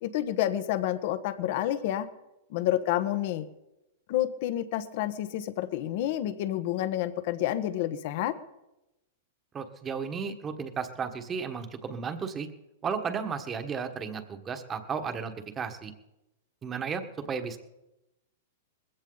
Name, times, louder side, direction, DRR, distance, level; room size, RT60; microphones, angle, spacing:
voice 1, 0.0-2.1 2.5-3.4 4.1-8.4, left 12 dB, 55° left, 12 dB, 1.2 m, -29 dB
voice 2, 9.5-12.5 12.8-15.9 16.6-17.6, right 6 dB, 20° right, 7 dB, 1.5 m, -34 dB
20.5 x 15.5 x 4.0 m, 0.96 s
hypercardioid pair, 140°, 0 cm